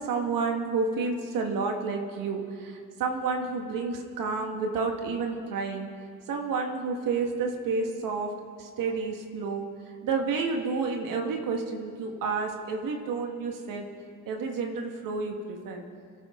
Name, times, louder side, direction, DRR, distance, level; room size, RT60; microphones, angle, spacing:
voice 1, 0.0-5.9 6.3-8.3 8.6-9.7 10.0-13.9 14.3-15.8, right 4 dB, 80° right, 2 dB, 2.0 m, -30 dB
24.0 x 13.0 x 3.9 m, 2.1 s
cardioid pair, 90°, 32 cm